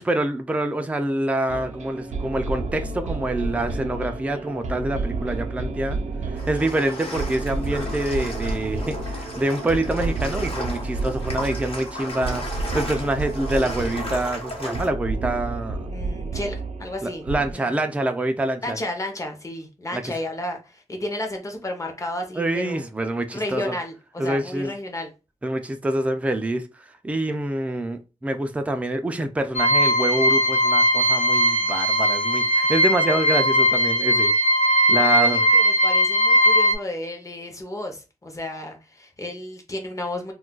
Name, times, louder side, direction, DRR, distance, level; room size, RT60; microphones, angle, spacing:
voice 1, 0.0-6.0 6.3-15.9 17.0-18.8 19.9-20.1 22.4-23.7 24.2-24.7 25.4-34.3 34.9-35.4, right 1 dB, 10° right, 0.3 m, -26 dB
sound 1, 1.5-17.5, right 3 dB, 75° right, 0.5 m, -30 dB
sound 2, 6.4-14.9, left 1 dB, 50° left, 0.9 m, -35 dB
voice 2, 15.9-17.7 18.6-22.8 23.3-25.1 35.0-40.3, left 1 dB, 25° left, 0.7 m, -32 dB
sound 3, 29.6-36.7, equal, 85° left, 0.5 m, -19 dB
2.3 x 2.2 x 3.8 m
wide cardioid pair, 145°, 12 cm